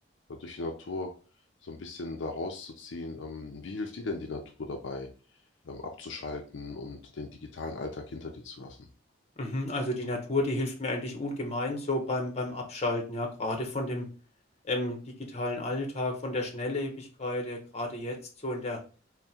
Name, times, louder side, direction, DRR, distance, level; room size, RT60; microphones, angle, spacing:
voice 1, 0.3-1.1 1.6-5.1 5.6-8.8, left 3 dB, 65° left, 3 dB, 0.5 m, -38 dB
voice 2, 9.4-14.1 14.6-15.0 15.3-18.2 18.4-18.8, left 2 dB, 35° left, 2 dB, 0.8 m, -31 dB
3.5 x 2.1 x 4.2 m, 0.37 s
head